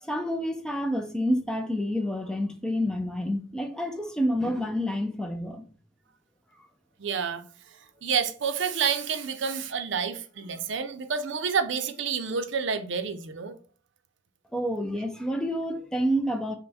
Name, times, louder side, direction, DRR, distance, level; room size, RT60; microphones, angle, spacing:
voice 1, 0.0-5.6 14.5-16.6, equal, 5° left, 0.3 m, -28 dB
voice 2, 7.0-7.4 8.0-13.5, right 6 dB, 60° right, 0.5 m, -29 dB
5.4 x 2.1 x 4.1 m
head